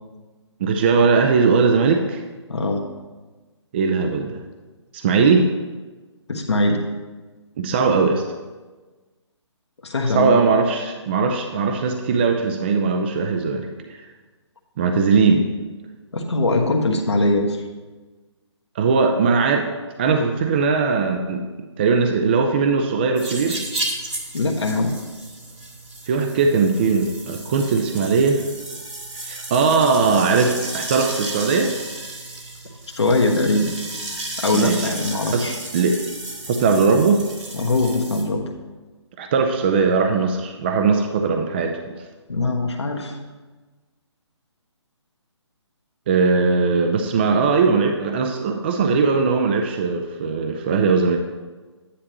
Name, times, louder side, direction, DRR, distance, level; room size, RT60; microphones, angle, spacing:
voice 1, 0.6-2.2 3.7-4.4 4.9-5.5 7.6-8.2 10.0-14.0 14.8-15.5 18.8-19.7 20.0-21.5 21.8-23.6 26.1-28.4 29.2-31.8 34.5-34.9 35.3-35.9 36.5-37.2 39.2-42.0 46.1-51.2, right 4 dB, 20° right, 5 dB, 0.4 m, -19 dB
voice 2, 2.5-2.8 6.3-6.8 9.8-10.4 16.1-17.6 24.3-24.9 32.9-33.7 34.4-35.6 37.5-38.4 42.3-43.2, left 2 dB, 65° left, 1 dB, 1.3 m, -21 dB
sound 1, 23.2-38.2, right 2 dB, 75° right, 2.7 m, -33 dB
10.5 x 9.9 x 3.0 m, 1.3 s
figure-of-eight pair, 140°, 15 cm